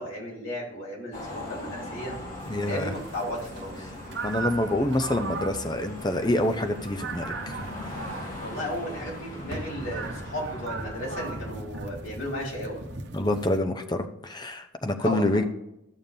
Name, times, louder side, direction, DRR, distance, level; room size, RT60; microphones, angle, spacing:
voice 1, 0.0-2.2 2.6-3.9 8.4-12.8 15.0-15.4, left 1 dB, 75° left, -3 dB, 3.8 m, -34 dB
sound 1, 1.1-11.5, left 1 dB, 45° left, 3.0 m, -40 dB
sound 2, 2.4-13.6, right 3 dB, 55° right, 1.0 m, -38 dB
voice 2, 2.5-2.9 4.2-7.6 13.1-15.4, left 1 dB, 20° left, 7 dB, 0.7 m, -27 dB
13.0 x 7.1 x 2.7 m, 0.85 s
head